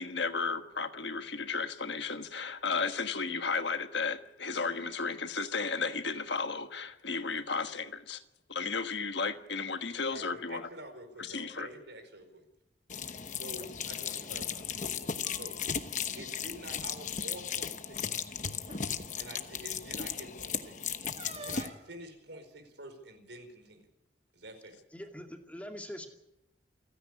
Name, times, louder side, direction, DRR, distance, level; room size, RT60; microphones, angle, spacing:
voice 1, 0.0-8.2 8.5-10.6 11.3-11.7, left 4 dB, 70° left, 1.4 m, -34 dB
voice 2, 10.1-12.4 13.3-15.6 16.2-18.3 19.2-20.9 21.4-23.8 24.3-24.8, right 1 dB, 75° right, 4.8 m, -48 dB
sound 1, 12.9-21.7, left 7 dB, 40° left, 1.0 m, -36 dB
sound 2, 13.6-13.7 15.0-15.9 16.1-16.3 16.7-16.9 17.9-18.0 18.6-18.9 21.2-21.9, right 3 dB, 35° right, 1.4 m, -49 dB
voice 3, 24.9-26.1, equal, 10° left, 2.3 m, -43 dB
29.0 x 10.0 x 9.8 m
head